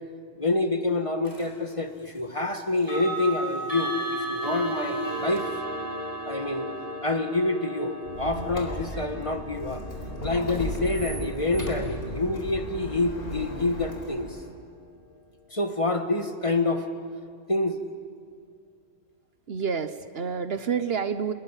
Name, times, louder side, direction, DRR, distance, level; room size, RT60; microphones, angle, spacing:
voice 1, 0.4-5.4 6.3-6.7 7.0-9.8 10.2-14.3 15.5-16.9 17.5-17.8, left 2 dB, 25° left, 7 dB, 1.5 m, -27 dB
sound 1, 1.2-1.5 2.8-13.6, right 1 dB, 15° right, 6.8 m, -35 dB
Squeak, 8.0-14.5, equal, 50° left, 4.3 m, -35 dB
voice 2, 19.5-21.3, right 6 dB, 60° right, 12 dB, 1.1 m, -28 dB
28.0 x 21.0 x 9.8 m, 2.1 s
omnidirectional pair, 1.2 m